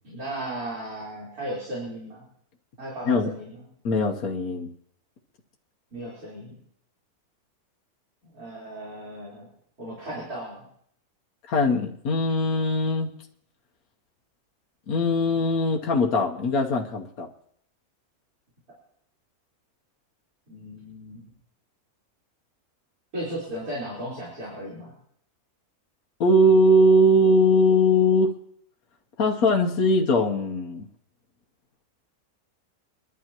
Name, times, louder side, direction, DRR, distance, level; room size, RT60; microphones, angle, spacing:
voice 1, 0.0-2.2 2.8-3.6 5.9-6.5 8.2-9.5 9.8-10.6 20.5-21.2 23.1-24.9, right 1 dB, 75° right, -7 dB, 4.8 m, -36 dB
voice 2, 3.8-4.7 11.5-13.1 14.9-17.3 26.2-28.3 29.2-30.9, left 1 dB, 75° left, 1 dB, 1.5 m, -20 dB
25.5 x 12.0 x 3.0 m, 0.66 s
omnidirectional pair, 1.6 m